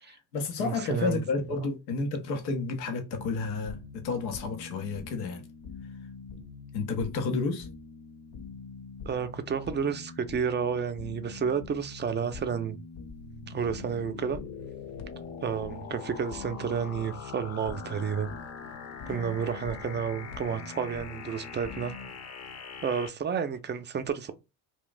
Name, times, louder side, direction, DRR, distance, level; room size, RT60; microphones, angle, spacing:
voice 1, 0.1-5.4 6.7-7.7 19.0-19.4, left 4 dB, 90° left, 0.7 m, -31 dB
voice 2, 0.6-1.2 9.1-12.8 13.5-14.4 15.4-18.3 19.1-22.0 22.8-24.3, right 7 dB, 25° right, 0.4 m, -31 dB
sound 1, 3.1-22.1, left 4 dB, 55° left, 0.9 m, -45 dB
sound 2, 13.1-23.1, left 6 dB, 35° left, 0.6 m, -43 dB
2.4 x 2.2 x 3.8 m
hypercardioid pair, 60°, 48 cm